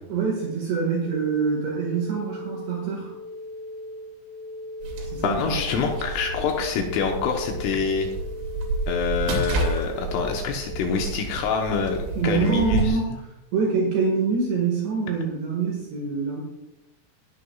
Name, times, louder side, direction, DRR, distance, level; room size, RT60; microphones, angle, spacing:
voice 1, 0.1-3.2 5.1-5.6 12.2-13.1 13.5-16.4, right 5 dB, 65° right, -2 dB, 3.6 m, -25 dB
sound 1, 1.0-11.0, left 1 dB, 15° left, 3.3 m, -39 dB
sound 2, 4.8-12.9, right 2 dB, 80° right, 5.2 m, -30 dB
voice 2, 5.2-8.1 8.9-12.0 12.2-13.0, left 6 dB, 75° left, 2 dB, 3.4 m, -26 dB
20.5 x 11.0 x 2.4 m, 0.95 s
omnidirectional pair, 6.0 m